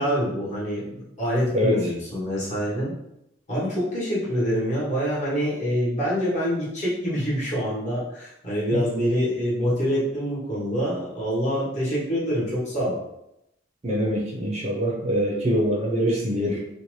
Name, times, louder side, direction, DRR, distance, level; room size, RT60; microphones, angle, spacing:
voice 1, 0.0-2.9 3.5-13.0, equal, 40° left, -8 dB, 1.1 m, -26 dB
voice 2, 13.8-16.6, equal, 35° right, -2 dB, 0.5 m, -24 dB
2.7 x 2.1 x 3.0 m, 0.85 s
head